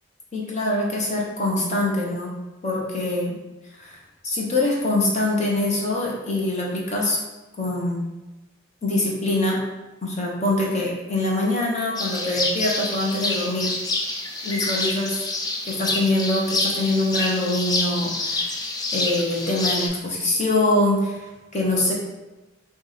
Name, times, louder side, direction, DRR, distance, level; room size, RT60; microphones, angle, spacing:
voice 1, 0.3-2.3 2.6-3.3 3.8-4.0 4.2-7.2 7.6-8.0 8.8-9.6 10.0-13.7 14.4-15.2 15.7-18.6 18.9-21.2 21.5-21.9, left 2 dB, 35° left, -3 dB, 1.0 m, -24 dB
sound 1, 12.0-19.9, left 2 dB, 20° left, 0.4 m, -27 dB
4.7 x 2.6 x 4.0 m, 1.1 s
head